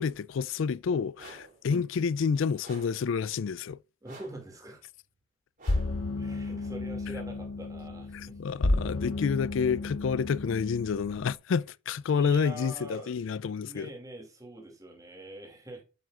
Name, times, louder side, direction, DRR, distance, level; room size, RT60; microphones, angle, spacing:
voice 1, 0.0-3.8 8.1-13.9, left 6 dB, 70° left, 0.4 m, -29 dB
sound 1, 1.2-1.6 2.6-3.1 4.0-4.5 5.6-6.1, right 2 dB, 40° right, 4.5 m, -49 dB
voice 2, 4.0-4.8 6.2-8.4 8.7-8.8 12.1-13.2 13.6-15.8, right 1 dB, 15° right, 2.4 m, -44 dB
sound 2, 5.7-11.3, left 2 dB, 90° left, 0.8 m, -32 dB
7.7 x 7.6 x 2.4 m
head